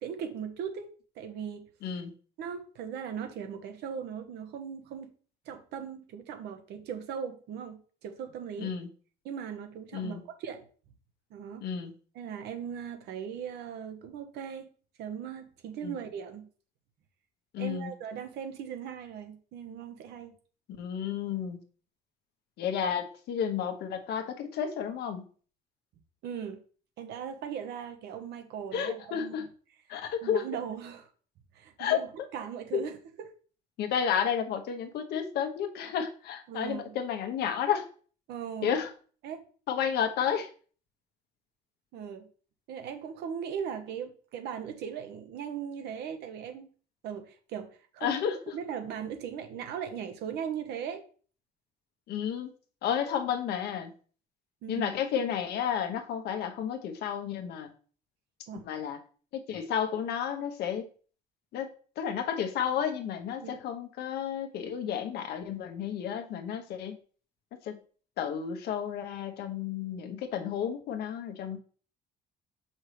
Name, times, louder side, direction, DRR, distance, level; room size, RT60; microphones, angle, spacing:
voice 1, 0.0-1.7 2.4-5.1 5.5-8.7 9.2-10.6 11.3-11.6 12.1-14.7 15.0-16.5 17.6-20.4 26.2-26.6 27.0-29.3 30.2-31.1 31.5-32.1 32.3-33.0 36.5-37.0 38.3-38.8 39.2-39.4 41.9-42.3 42.7-46.7 47.0-48.2 48.5-51.0 54.6-54.9 58.5-58.6 63.4-63.6, right 8 dB, 80° right, 7 dB, 1.1 m, -38 dB
voice 2, 8.6-8.9 9.9-10.2 11.6-11.9 15.8-16.0 17.5-17.9 20.8-21.6 22.6-25.3 28.7-29.5 29.9-30.4 31.8-32.0 32.7-32.8 33.8-37.9 38.6-38.9 39.7-40.5 48.0-48.5 52.1-52.5 52.8-53.9 54.7-57.7 58.6-59.0 59.3-60.9 61.5-61.7 62.0-67.0 67.5-67.8 68.2-71.6, left 8 dB, 75° left, 6 dB, 1.0 m, -31 dB
6.2 x 5.5 x 3.3 m, 0.42 s
cardioid pair, 110°, 17 cm